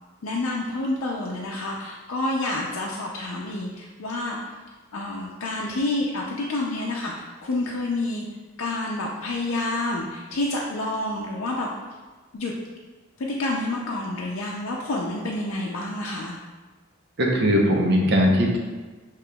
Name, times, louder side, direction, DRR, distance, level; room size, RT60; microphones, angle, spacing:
voice 1, 0.2-4.4 4.9-8.2 8.6-11.7 12.3-12.5 13.2-16.3, left 2 dB, 85° left, -2 dB, 0.5 m, -28 dB
voice 2, 17.2-18.6, equal, 55° right, 0 dB, 0.7 m, -19 dB
6.7 x 3.0 x 2.3 m, 1.3 s
head